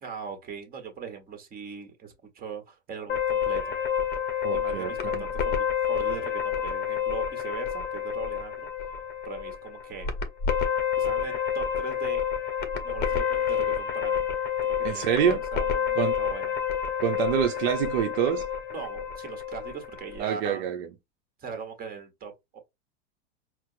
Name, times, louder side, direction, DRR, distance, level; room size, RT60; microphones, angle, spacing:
voice 1, 0.0-3.7 4.5-8.8 9.2-10.1 11.0-12.2 12.8-14.3 14.6-15.1 15.5-16.5 18.7-20.6 21.4-22.6, right 6 dB, 25° right, 1.3 m, -40 dB
sound 1, 3.1-20.2, left 8 dB, 30° left, 0.8 m, -29 dB
voice 2, 4.4-5.3 14.8-15.4 16.0-16.1 17.0-18.4 20.2-20.9, right 9 dB, 65° right, 0.7 m, -26 dB
4.3 x 2.0 x 2.6 m
hypercardioid pair, 115°, 34 cm